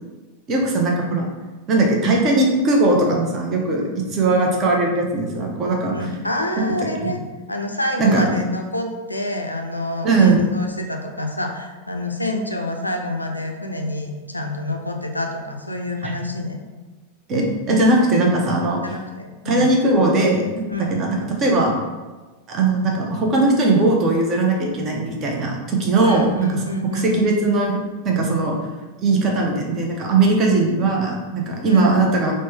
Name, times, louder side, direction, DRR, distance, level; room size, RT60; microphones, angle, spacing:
voice 1, 0.5-1.3 1.7-6.0 6.6-6.7 7.0-7.1 8.0-8.3 10.0-10.4 16.0-16.1 17.3-18.8 19.5-20.6 20.9-21.7 22.5-27.8 28.0-28.6 29.0-32.3, right 2 dB, 30° right, 0 dB, 0.6 m, -19 dB
voice 2, 5.9-7.2 7.5-16.6 18.8-19.7 20.7-21.0 26.0-27.2 31.7-32.1, left 1 dB, 85° left, 3 dB, 0.3 m, -27 dB
3.2 x 2.1 x 3.1 m, 1.3 s
figure-of-eight pair, 90°, 0 cm